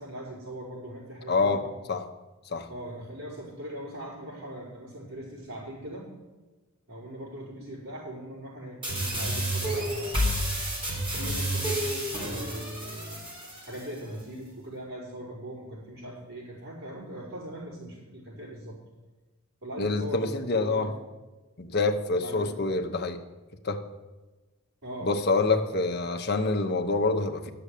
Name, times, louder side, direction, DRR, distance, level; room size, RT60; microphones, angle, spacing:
voice 1, 0.0-1.6 2.7-6.0 6.9-10.6 11.2-13.2 13.6-18.8 19.6-21.0 22.1-22.6 24.8-25.8, right 1 dB, 75° right, -11 dB, 5.1 m, -40 dB
voice 2, 1.3-2.1 2.5-2.7 19.8-20.9 21.6-23.2 23.6-23.8 25.0-27.5, left 3 dB, 50° left, 5 dB, 0.9 m, -26 dB
sound 1, 8.8-13.8, equal, 25° right, 3.6 m, -30 dB
11.5 x 6.8 x 8.4 m, 1.2 s
head